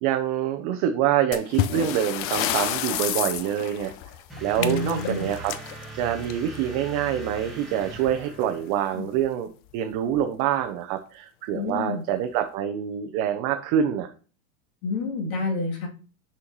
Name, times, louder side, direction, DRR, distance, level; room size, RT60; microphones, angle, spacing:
voice 1, 0.0-3.9 4.4-5.5 5.9-9.5 9.7-14.1, right 10 dB, 45° right, 6 dB, 0.8 m, -26 dB
sound 1, 1.3-6.7 7.9-8.1 8.4-8.5 9.2-9.3 9.9-10.2, left 11 dB, 35° left, 0.4 m, -30 dB
sound 2, 4.3-9.0, right 2 dB, ahead, 1.6 m, -40 dB
voice 2, 4.6-5.3 8.9-9.1 11.5-12.0 14.8-15.9, left 3 dB, 80° left, -1 dB, 2.9 m, -29 dB
6.2 x 5.8 x 3.0 m, 0.37 s
supercardioid pair, 135°, 43 cm